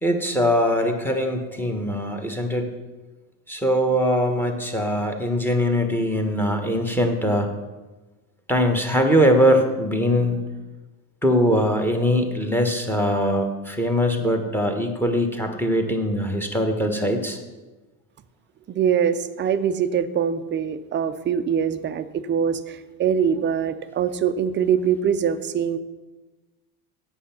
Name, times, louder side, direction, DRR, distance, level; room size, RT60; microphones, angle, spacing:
voice 1, 0.0-2.7 3.5-7.5 8.5-10.4 11.2-17.4, equal, 5° left, 5 dB, 1.2 m, -22 dB
voice 2, 18.7-25.8, right 8 dB, 25° right, 10 dB, 0.5 m, -23 dB
8.5 x 6.9 x 5.8 m, 1.2 s
supercardioid pair, 110°, 49 cm